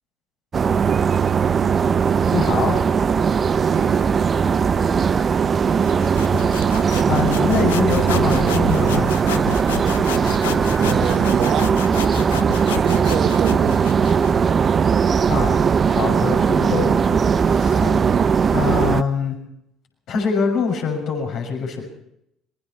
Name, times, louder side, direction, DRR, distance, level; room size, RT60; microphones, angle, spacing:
sound 1, 0.5-19.0, right 6 dB, 35° right, 0.9 m, -19 dB
voice 1, 2.3-2.8 7.1-9.1 15.3-15.5 15.8-18.2 18.5-19.4 20.1-21.9, left 5 dB, 55° left, 1 dB, 6.5 m, -24 dB
Livestock farm animals working animals, 3.1-18.0, right 2 dB, 10° right, 2.2 m, -34 dB
voice 2, 3.7-4.1 10.8-11.8 12.7-13.8 18.0-18.3, right 10 dB, 55° right, 10 dB, 1.3 m, -26 dB
sound 2, 5.8-14.4, left 12 dB, 75° left, 0.6 m, -31 dB
27.0 x 22.0 x 4.4 m, 0.79 s
figure-of-eight pair, 60°, 0 cm